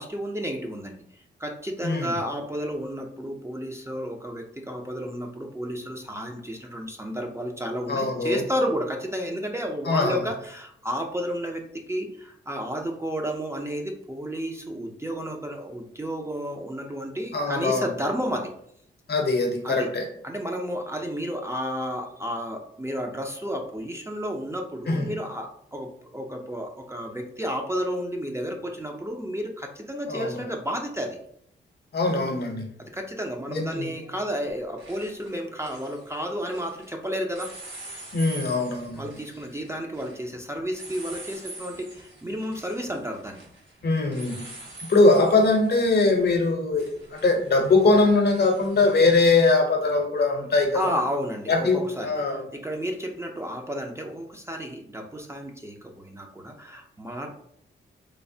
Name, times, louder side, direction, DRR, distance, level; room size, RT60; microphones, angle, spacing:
voice 1, 0.0-18.5 19.6-19.9 20.2-31.2 32.8-37.5 38.9-43.4 50.7-57.3, equal, 15° right, 2 dB, 0.4 m, -32 dB
voice 2, 1.8-2.1 7.9-8.4 9.9-10.2 17.3-17.9 19.1-20.0 24.9-25.1 30.1-30.5 31.9-32.7 33.5-33.9 38.1-39.1 43.8-44.4 44.9-50.9 51.5-51.8 52.0-52.4, left 3 dB, 55° left, 3 dB, 0.7 m, -21 dB
sound 1, 32.1-32.2 33.9-34.2 34.5-36.9 37.3-49.1, right 2 dB, 65° right, 1.4 m, -45 dB
3.1 x 2.0 x 2.6 m, 0.71 s
cardioid pair, 60°, 21 cm